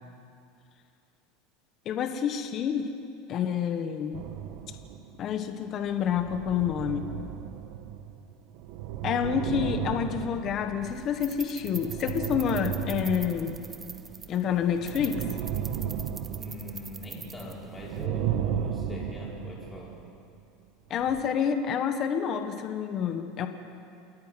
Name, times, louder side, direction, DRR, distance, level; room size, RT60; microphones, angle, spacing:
voice 1, 1.8-2.9 3.3-4.2 5.2-7.1 9.0-13.6 14.3-15.2 20.9-23.5, left 8 dB, 35° left, 7 dB, 1.3 m, -28 dB
sound 1, 4.1-5.5 5.9-14.3 14.6-17.4 17.7-20.2 21.0-21.2, right 9 dB, 55° right, 1.1 m, -35 dB
sound 2, 10.8-18.1, right 5 dB, 15° right, 0.7 m, -44 dB
voice 2, 16.4-20.0, left 1 dB, 15° left, -4 dB, 4.6 m, -42 dB
28.5 x 10.5 x 9.2 m, 2.5 s
supercardioid pair, 155°, 0 cm